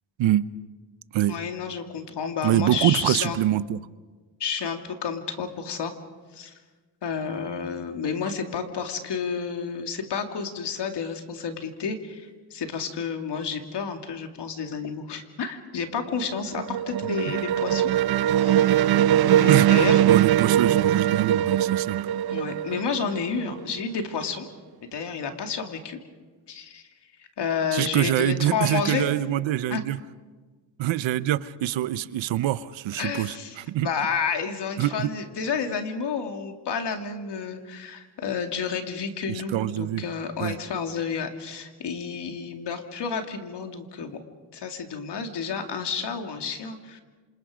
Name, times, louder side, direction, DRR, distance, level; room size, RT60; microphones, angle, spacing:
voice 1, 1.3-3.4 4.4-5.9 6.3-6.5 7.0-17.9 18.4-20.0 22.3-24.5 24.9-26.0 26.5-26.9 27.2-29.1 29.7-29.8 32.9-33.6 33.8-44.2 44.5-47.0, left 6 dB, 65° left, 5 dB, 2.8 m, -30 dB
voice 2, 2.4-3.8 19.5-19.7 20.0-22.0 27.7-30.0 30.8-33.9 34.8-35.1 39.3-40.0 40.4-40.5, right 13 dB, 80° right, 16 dB, 0.9 m, -24 dB
sound 1, 16.0-23.7, right 11 dB, 55° right, 0.6 m, -21 dB
27.5 x 27.0 x 5.1 m, 1.3 s
cardioid pair, 95°, 45 cm